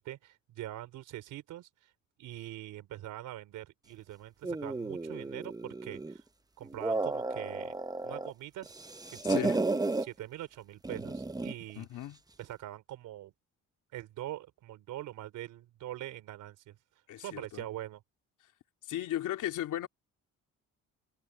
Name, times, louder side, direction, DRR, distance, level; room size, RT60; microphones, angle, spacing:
voice 1, 0.0-1.9 2.2-6.2 6.6-7.7 8.0-8.7 9.1-11.9 12.4-13.3 13.9-16.8 17.2-18.0, right 14 dB, 85° right, 4.0 m, -43 dB
sound 1, 4.4-6.2 6.6-8.3 8.6-10.1 10.8-11.6, right 2 dB, 10° right, 1.0 m, -33 dB
voice 2, 9.3-9.6 11.7-12.2 17.1-17.6 18.8-19.9, left 12 dB, 80° left, 3.3 m, -36 dB
cardioid pair, 90°, 30 cm